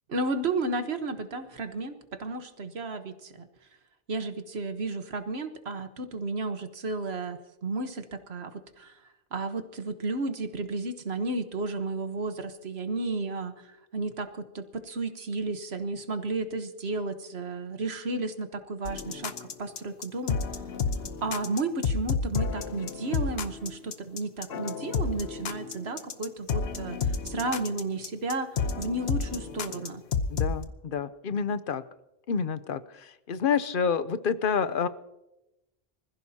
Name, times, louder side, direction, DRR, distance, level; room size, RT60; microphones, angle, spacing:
voice 1, 0.1-3.5 4.1-9.0 9.3-20.4 21.2-30.0, right 3 dB, 85° right, 8 dB, 1.5 m, -33 dB
sound 1, 18.9-30.6, left 5 dB, 80° left, 1.1 m, -31 dB
voice 2, 30.3-31.8 32.3-34.9, left 6 dB, 60° left, 13 dB, 0.9 m, -28 dB
25.5 x 15.0 x 2.8 m, 0.95 s
omnidirectional pair, 1.0 m